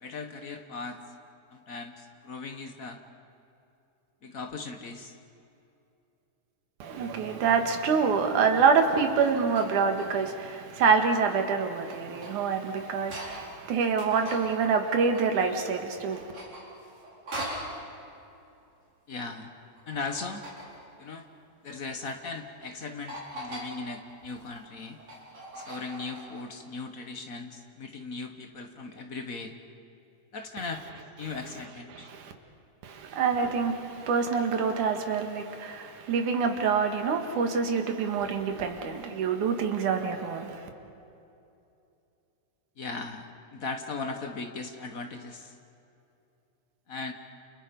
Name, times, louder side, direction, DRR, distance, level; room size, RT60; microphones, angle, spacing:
voice 1, 0.0-1.0 1.5-3.0 4.2-5.2 19.1-19.5 19.9-20.4 21.0-21.3 21.6-25.0 25.5-29.5 30.3-30.8 31.2-32.1 42.8-43.2 43.5-45.5 46.9-47.1, left 4 dB, 65° left, 0.8 m, -38 dB
voice 2, 6.8-16.2 31.9-32.3 32.8-40.6, right 5 dB, 85° right, 3.2 m, -26 dB
sound 1, 8.9-10.3 10.8-13.5 13.8-15.8 16.1-17.8 19.8-20.8 21.7-22.2 22.6-22.7 23.1-23.7 24.2-26.5, right 1 dB, 60° right, 5.9 m, -42 dB
30.0 x 29.0 x 5.3 m
omnidirectional pair, 3.4 m